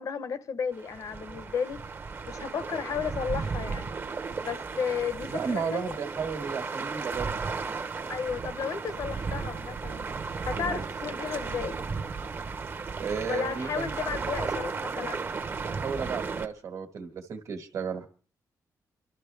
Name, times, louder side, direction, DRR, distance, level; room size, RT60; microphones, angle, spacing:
voice 1, 0.0-1.8 2.3-3.9 4.4-6.0 8.1-10.1 10.4-11.8 13.3-15.2, left 6 dB, 60° left, 0.9 m, -33 dB
sound 1, 0.7-16.5, right 4 dB, 35° right, 0.9 m, -35 dB
voice 2, 5.3-7.4 10.5-10.8 13.0-13.9 15.7-18.1, right 6 dB, 55° right, 1.5 m, -34 dB
29.5 x 12.5 x 3.4 m
wide cardioid pair, 165°, 7 cm